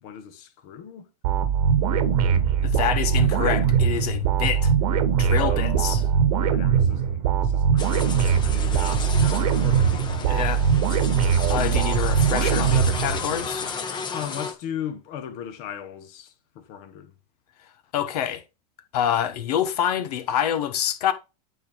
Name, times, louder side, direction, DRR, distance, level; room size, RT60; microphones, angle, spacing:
voice 1, 0.0-1.1 5.4-5.9 6.3-10.3 14.1-17.1, left 9 dB, 50° left, 1.4 m, -38 dB
sound 1, 1.2-13.5, right 7 dB, 70° right, 1.2 m, -21 dB
voice 2, 2.6-4.7 5.2-6.1 10.3-10.6 11.5-13.7 17.9-18.4 18.9-21.1, left 10 dB, 75° left, 1.3 m, -26 dB
sound 2, 7.8-14.5, left 5 dB, 20° left, 1.0 m, -34 dB
8.7 x 4.6 x 3.4 m
supercardioid pair, 135°, 20 cm